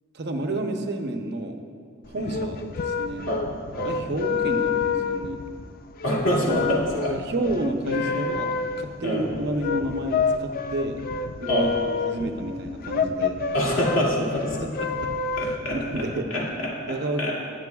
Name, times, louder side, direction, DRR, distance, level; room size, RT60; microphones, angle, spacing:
voice 1, 0.1-1.6 2.1-3.3 3.8-5.4 7.1-11.0 11.4-13.4 14.6-14.9 15.4-16.3 16.9-17.3, right 1 dB, 55° right, 5 dB, 0.7 m, -30 dB
sound 1, 2.0-16.0, left 5 dB, 45° left, 0.4 m, -29 dB
voice 2, 6.0-7.1 7.9-8.1 9.0-9.2 11.5-11.7 13.5-14.4 15.4-15.8 16.3-16.7 17.2-17.3, equal, 80° left, -5 dB, 2.4 m, -25 dB
19.5 x 7.4 x 2.3 m, 2.2 s
head